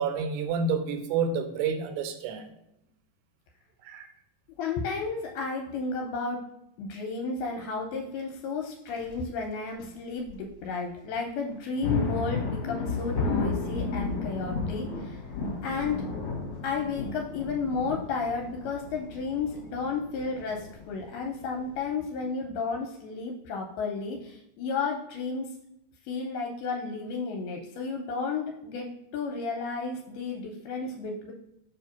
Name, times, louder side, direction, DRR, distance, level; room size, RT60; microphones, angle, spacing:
voice 1, 0.0-2.5 3.8-4.1, right 5 dB, 85° right, 7 dB, 2.7 m, -29 dB
voice 2, 4.6-6.4 6.8-15.2 15.6-16.1 16.6-25.5 26.1-31.3, left 4 dB, 85° left, 1 dB, 2.5 m, -32 dB
sound 1, 8.9-9.2 9.8-9.9 10.3-10.4 11.5-21.8, left 4 dB, 50° left, 2.2 m, -33 dB
7.0 x 2.8 x 5.8 m, 0.81 s
omnidirectional pair, 4.6 m